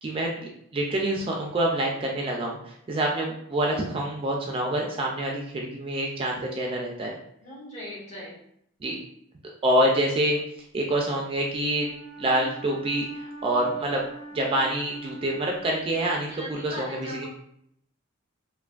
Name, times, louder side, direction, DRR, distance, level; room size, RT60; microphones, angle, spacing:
voice 1, 0.0-7.2 8.8-9.0 9.6-10.4 10.7-11.9 12.2-14.0 14.3-17.3, right 1 dB, 25° right, -1 dB, 0.3 m, -26 dB
voice 2, 7.4-8.4 16.3-17.3, equal, 35° left, -6 dB, 1.1 m, -39 dB
Wind instrument woodwind instrument, 11.7-16.5, right 2 dB, ahead, 0.7 m, -43 dB
3.2 x 2.2 x 2.4 m, 0.71 s
head